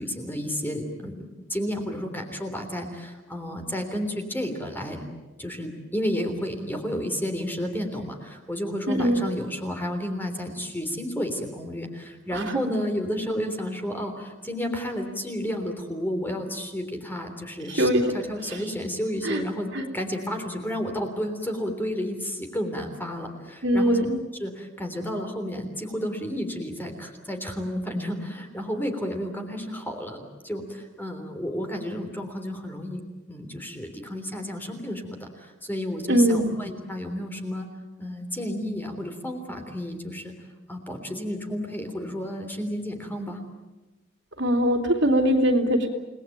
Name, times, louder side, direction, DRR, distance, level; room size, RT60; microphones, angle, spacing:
voice 1, 0.0-5.0 5.4-24.0 24.4-33.0 33.3-37.7 38.0-40.3 40.7-43.4, equal, 10° left, 5 dB, 3.4 m, -31 dB
voice 2, 8.9-9.2 12.3-12.6 17.7-18.1 18.5-18.6 19.2-19.4 19.7-19.8 23.6-24.2 36.1-36.5 44.4-45.9, equal, 60° right, 4 dB, 3.3 m, -22 dB
29.5 x 19.5 x 9.2 m, 1.1 s
head